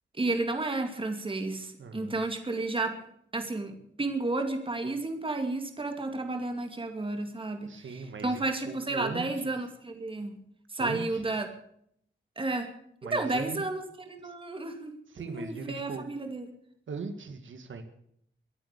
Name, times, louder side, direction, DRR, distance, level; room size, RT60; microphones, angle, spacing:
voice 1, 0.2-3.0 3.3-7.8 8.2-10.4 10.7-11.5 12.4-12.7 13.1-14.9 15.3-16.4, right 2 dB, 25° right, 5 dB, 2.4 m, -32 dB
voice 2, 1.8-2.2 7.6-9.6 10.8-11.2 13.0-13.6 14.2-14.3 15.1-16.1 16.9-17.8, right 4 dB, 80° right, 7 dB, 2.0 m, -39 dB
24.0 x 8.6 x 6.8 m, 0.69 s
wide cardioid pair, 145°, 20 cm